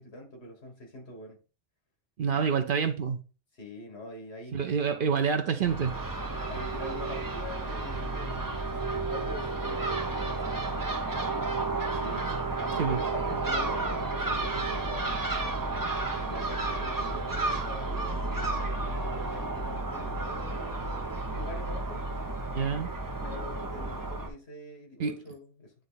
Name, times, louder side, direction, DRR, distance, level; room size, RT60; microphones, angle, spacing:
voice 1, 0.0-1.4 3.5-4.9 6.5-10.7 11.8-12.3 12.6-15.2 16.2-22.0 23.2-25.7, left 1 dB, 70° left, 2.0 m, -44 dB
voice 2, 2.2-3.2 4.5-5.9 12.8-13.0 22.5-22.9 25.0-25.1, right 6 dB, 55° right, 0.9 m, -27 dB
Crow / Gull seagull, 5.6-24.3, right 3 dB, 20° right, 0.9 m, -32 dB
9.4 x 3.3 x 3.9 m
omnidirectional pair, 1.1 m